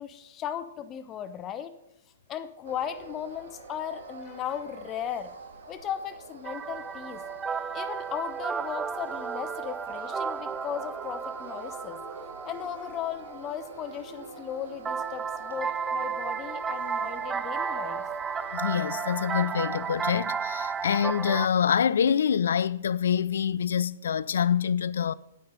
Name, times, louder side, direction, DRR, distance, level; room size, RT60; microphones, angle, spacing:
voice 1, 0.0-1.7 2.3-5.3 5.7-7.2 7.7-12.0 12.4-18.0, left 9 dB, 25° left, 0.8 m, -36 dB
sound 1, 2.6-21.8, right 3 dB, 55° right, 1.8 m, -45 dB
sound 2, 6.4-13.9 14.9-21.5, right 6 dB, 15° right, 0.4 m, -33 dB
voice 2, 18.5-25.1, left 8 dB, 65° left, 0.3 m, -26 dB
9.3 x 8.8 x 5.3 m
figure-of-eight pair, 110°, 0 cm